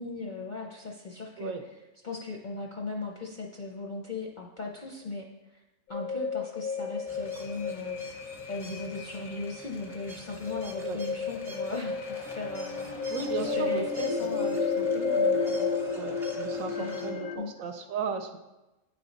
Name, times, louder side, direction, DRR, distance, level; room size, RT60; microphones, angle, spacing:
voice 1, 0.0-1.5 2.0-5.3 5.5-5.6 5.9-8.2 8.5-15.7 16.8-17.5, left 3 dB, 50° left, -1 dB, 0.5 m, -38 dB
sound 1, 5.9-17.4, left 4 dB, 90° left, 1.2 m, -32 dB
sound 2, 7.1-17.1, right 1 dB, 5° right, 0.5 m, -48 dB
voice 2, 13.1-13.9 15.9-18.4, right 6 dB, 80° right, 6 dB, 1.0 m, -35 dB
9.2 x 3.4 x 4.0 m, 1.0 s
omnidirectional pair, 1.4 m